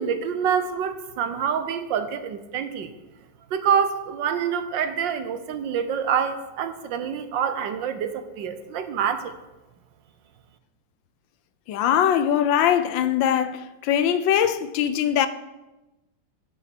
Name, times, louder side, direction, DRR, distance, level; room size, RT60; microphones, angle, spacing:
voice 1, 0.0-2.9 3.5-9.3, right 7 dB, 70° right, 1.5 m, -26 dB
voice 2, 11.7-15.3, left 9 dB, 75° left, 1.4 m, -21 dB
11.0 x 7.0 x 6.1 m
omnidirectional pair, 2.1 m